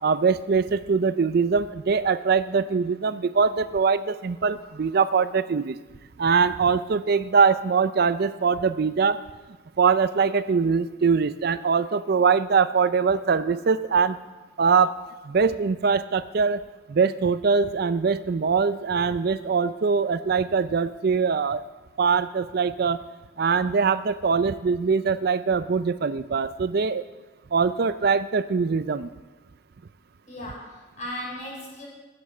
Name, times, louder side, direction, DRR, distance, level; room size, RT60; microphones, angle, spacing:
voice 1, 0.0-5.8 6.2-9.2 9.8-14.2 14.6-14.9 15.3-16.6 16.9-21.6 22.0-23.0 23.4-27.1 27.5-29.1, right 5 dB, 55° right, 14 dB, 0.4 m, -22 dB
voice 2, 30.3-31.9, left 1 dB, 40° left, -4 dB, 5.8 m, -36 dB
14.5 x 8.7 x 7.1 m, 1.2 s
head